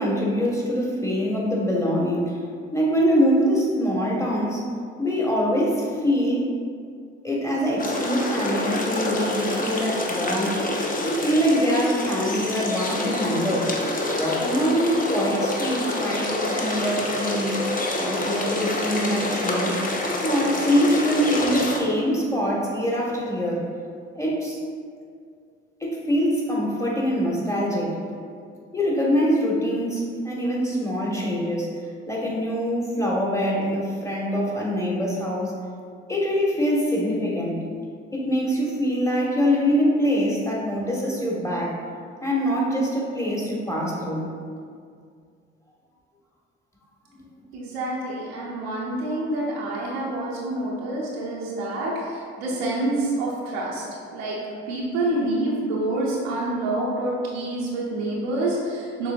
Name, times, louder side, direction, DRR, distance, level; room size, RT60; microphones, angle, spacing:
voice 1, 0.0-2.4 2.7-4.7 5.0-6.5 7.2-10.6 11.0-13.7 14.1-17.6 18.0-19.8 20.2-23.6 24.2-24.6 25.8-28.0 28.7-31.7 32.1-35.6 36.1-37.6 38.1-41.8 42.2-44.3 47.1-47.2, equal, 10° left, -4 dB, 1.4 m, -24 dB
sound 1, 7.8-21.8, left 1 dB, 30° left, 0.9 m, -27 dB
voice 2, 47.5-53.8 54.1-59.1, right 2 dB, 90° right, -5 dB, 0.7 m, -27 dB
6.4 x 3.3 x 2.5 m, 2.2 s
hypercardioid pair, 50°, 30 cm